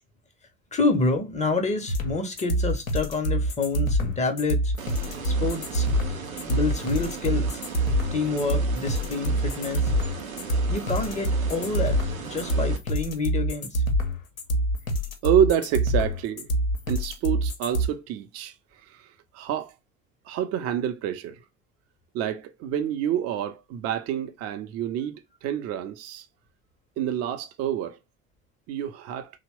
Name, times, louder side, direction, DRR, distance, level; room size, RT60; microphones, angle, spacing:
voice 1, 0.7-4.7 5.2-5.9 6.5-7.6 8.1-9.9 10.7-13.8, left 3 dB, 15° left, 0.6 m, -28 dB
sound 1, 1.9-17.9, right 1 dB, 85° left, 0.6 m, -25 dB
sound 2, 4.8-12.8, right 6 dB, 90° right, 0.5 m, -37 dB
voice 2, 6.1-6.5 15.2-16.5 16.9-18.5 18.9-19.1 19.3-19.7 20.3-21.4 22.1-26.3 27.0-28.0 28.7-29.3, right 9 dB, 40° right, 0.5 m, -28 dB
2.9 x 2.0 x 3.0 m
figure-of-eight pair, 65°, 41 cm